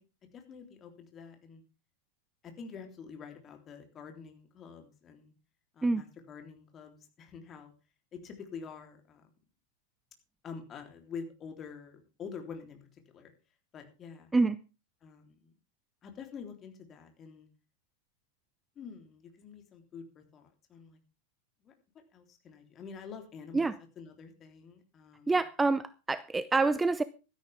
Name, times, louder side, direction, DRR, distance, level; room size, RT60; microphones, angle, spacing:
voice 1, 0.3-1.6 2.4-5.3 5.7-7.7 8.1-9.3 10.4-13.3 13.7-14.3 15.0-15.5 16.0-17.5 18.8-21.0 21.6-25.4, left 6 dB, 25° left, 3.4 m, -47 dB
voice 2, 25.3-27.0, right 3 dB, 10° right, 0.6 m, -27 dB
16.0 x 13.0 x 3.5 m
figure-of-eight pair, 90°, 0 cm